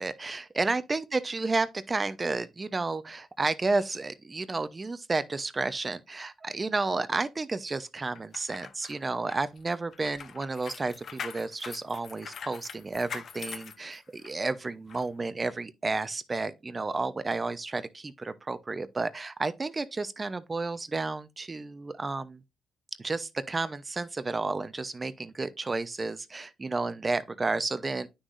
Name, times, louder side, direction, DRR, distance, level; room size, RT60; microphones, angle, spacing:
voice 1, 0.0-22.4 23.0-28.1, right 3 dB, 30° right, 0.9 m, -31 dB
sound 1, 8.2-14.4 14.9-15.0, left 6 dB, 60° left, 0.7 m, -43 dB
9.5 x 6.3 x 2.6 m
supercardioid pair, 65°, 0 cm